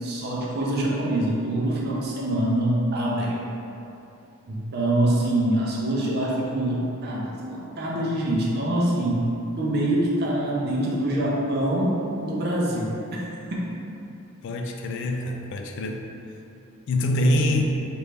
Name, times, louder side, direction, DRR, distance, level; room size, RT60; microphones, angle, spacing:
voice 1, 0.0-3.4 4.5-9.3 9.6-13.2 13.5-13.7, right 1 dB, 50° right, -4 dB, 0.6 m, -25 dB
voice 2, 14.4-16.1 16.9-17.6, left 1 dB, 60° left, 3 dB, 0.3 m, -24 dB
3.2 x 2.5 x 3.2 m, 2.8 s
head